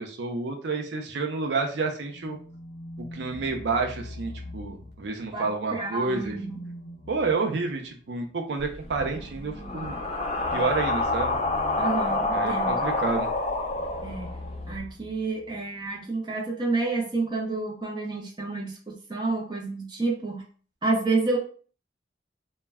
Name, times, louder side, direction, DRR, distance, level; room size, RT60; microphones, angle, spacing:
voice 1, 0.0-2.4 3.1-6.4 7.1-10.0 10.5-11.3 12.3-13.3, right 4 dB, 75° right, 3 dB, 0.4 m, -29 dB
sound 1, 2.0-5.3 6.0-12.6 13.6-15.5, left 1 dB, 70° left, 0.7 m, -43 dB
voice 2, 5.3-6.6 11.8-12.8 14.0-14.3 14.7-20.4 20.8-21.4, right 3 dB, 25° right, -1 dB, 0.5 m, -29 dB
sound 2, 8.6-14.7, left 2 dB, 35° left, 0.4 m, -28 dB
2.1 x 2.1 x 3.3 m, 0.41 s
head